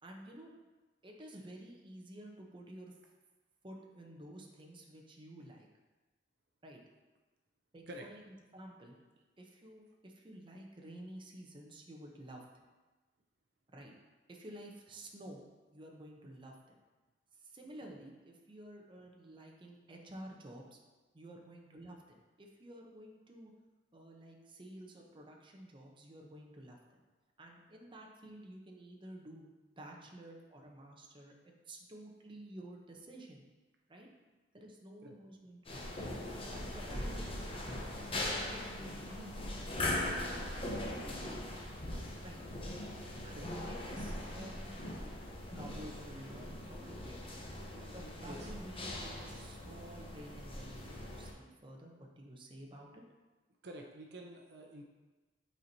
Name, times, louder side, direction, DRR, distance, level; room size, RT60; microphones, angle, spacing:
voice 1, 0.0-0.5 1.0-2.9 3.6-5.7 6.6-6.8 7.7-9.0 9.4-12.5 13.7-13.9 14.3-15.5 15.7-16.8 17.3-20.8 21.1-23.5 23.9-27.0 27.4-33.5 33.9-34.1 34.5-37.6 38.3-39.4 39.7-41.7 42.2-42.4 43.2-45.1 45.5-47.2 47.9-53.0, right 1 dB, 30° right, 0 dB, 0.7 m, -52 dB
sound 1, 35.6-51.3, left 1 dB, 35° left, 0.8 m, -40 dB
voice 2, 53.6-54.8, right 1 dB, 65° right, 1 dB, 0.6 m, -48 dB
8.0 x 4.4 x 2.7 m, 1.2 s
head